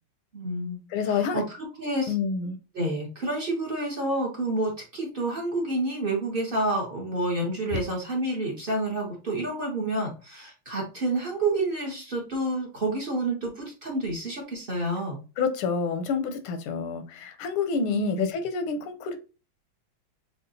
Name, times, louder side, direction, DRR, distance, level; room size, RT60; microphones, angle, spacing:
voice 1, 0.3-0.8 1.1-2.1 2.7-15.2 17.9-18.3, right 2 dB, 45° right, 0.7 m, -29 dB
voice 2, 0.9-1.4 2.1-2.6 15.4-19.2, left 5 dB, 85° left, 1.6 m, -28 dB
6.5 x 2.4 x 2.7 m
omnidirectional pair, 2.3 m